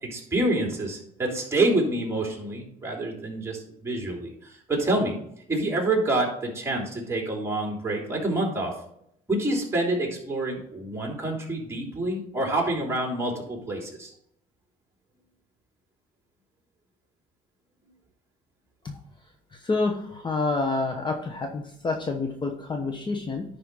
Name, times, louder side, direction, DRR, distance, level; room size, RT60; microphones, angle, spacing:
voice 1, 0.0-5.2 5.5-8.7 9.3-14.1, right 2 dB, 15° right, -1 dB, 3.3 m, -27 dB
voice 2, 19.6-23.4, left 3 dB, 25° left, 4 dB, 1.0 m, -28 dB
11.0 x 5.0 x 4.1 m, 0.71 s
cardioid pair, 110°, 17 cm